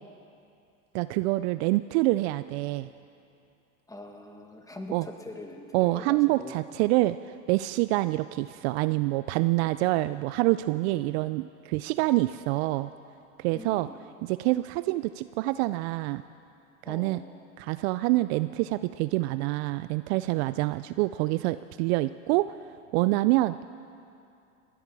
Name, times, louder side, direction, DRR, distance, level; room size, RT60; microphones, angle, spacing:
voice 1, 0.9-2.9 4.9-5.1 5.7-7.2 7.5-12.9 13.4-13.9 14.2-16.2 16.9-17.2 17.6-22.5 22.9-23.6, right 19 dB, 55° right, 14 dB, 0.4 m, -26 dB
voice 2, 3.9-6.6 11.1-11.2 13.5-14.0 16.8-17.4, left 1 dB, 10° left, 3 dB, 1.8 m, -43 dB
19.5 x 12.5 x 4.8 m, 2.5 s
hypercardioid pair, 95°, 39 cm